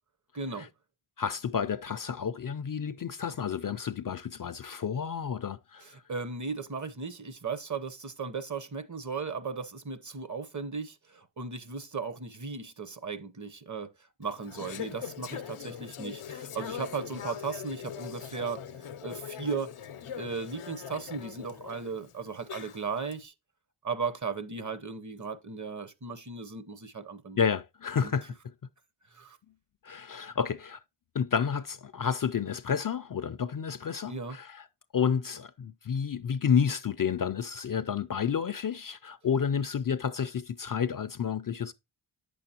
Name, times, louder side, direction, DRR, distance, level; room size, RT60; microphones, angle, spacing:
voice 1, 0.3-0.7 5.8-13.9 14.2-18.6 19.0-19.7 20.2-23.3 23.8-27.4 28.0-28.1 29.1-29.4 34.1-34.4, right 5 dB, 35° right, 0.9 m, -36 dB
voice 2, 1.2-5.9 27.4-28.3 29.8-30.8 31.1-34.6 34.9-41.7, left 7 dB, 45° left, 0.4 m, -30 dB
Conversation / Chatter, 14.2-23.1, left 8 dB, 80° left, 0.7 m, -42 dB
8.5 x 6.9 x 2.8 m
cardioid pair, 55°, 49 cm